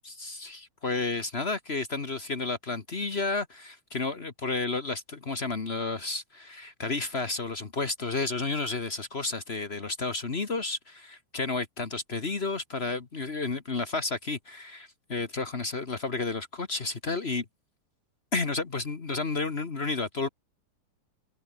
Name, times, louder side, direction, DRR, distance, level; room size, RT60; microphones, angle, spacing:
voice 1, 0.0-17.4 18.3-20.3, left 3 dB, 45° left, 0.7 m, -31 dB
omnidirectional pair, 3.8 m